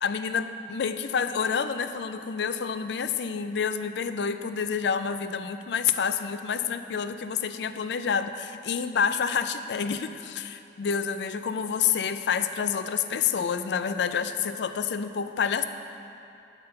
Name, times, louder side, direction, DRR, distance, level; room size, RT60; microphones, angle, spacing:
voice 1, 0.0-15.6, left 7 dB, 80° left, 10 dB, 0.4 m, -28 dB
9.6 x 4.3 x 6.6 m, 2.6 s
head